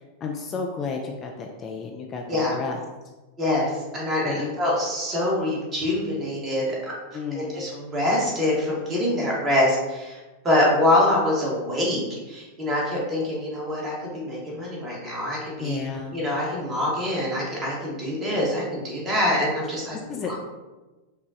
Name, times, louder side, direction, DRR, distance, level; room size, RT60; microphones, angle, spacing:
voice 1, 0.2-2.8 4.2-4.5 7.1-7.6 15.6-16.1 20.1-20.3, left 5 dB, 30° left, 1 dB, 0.4 m, -32 dB
voice 2, 3.4-6.8 7.3-15.8 16.1-20.0 20.2-20.3, left 1 dB, 25° right, -4 dB, 1.4 m, -25 dB
4.9 x 2.2 x 2.8 m, 1.2 s
figure-of-eight pair, 90°, 0 cm